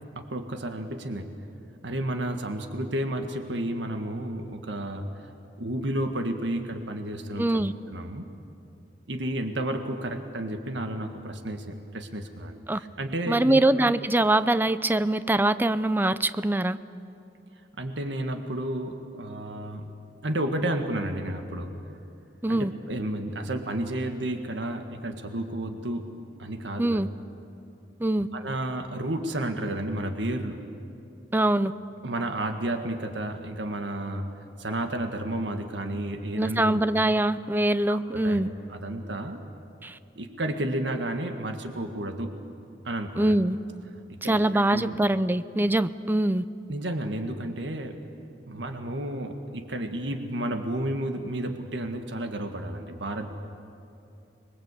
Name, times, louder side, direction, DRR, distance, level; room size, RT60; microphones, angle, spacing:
voice 1, 0.1-1.3 1.8-5.1 5.6-7.5 7.9-8.2 9.1-13.6 17.8-19.9 20.2-21.7 22.5-26.1 26.4-27.0 28.3-30.6 32.0-34.3 34.6-36.8 37.9-38.0 38.2-38.4 38.7-39.4 40.1-42.3 42.8-43.3 44.2-45.0 46.7-48.0 48.5-53.3, right 1 dB, 85° right, 6 dB, 1.7 m, -31 dB
voice 2, 7.4-7.7 12.7-12.8 13.3-16.8 22.4-22.7 26.8-27.1 28.0-28.3 31.3-31.7 36.4-38.5 39.8-40.0 43.2-43.6 44.2-46.4, right 1 dB, 10° right, 14 dB, 0.5 m, -23 dB
26.0 x 21.5 x 8.3 m, 2.8 s
head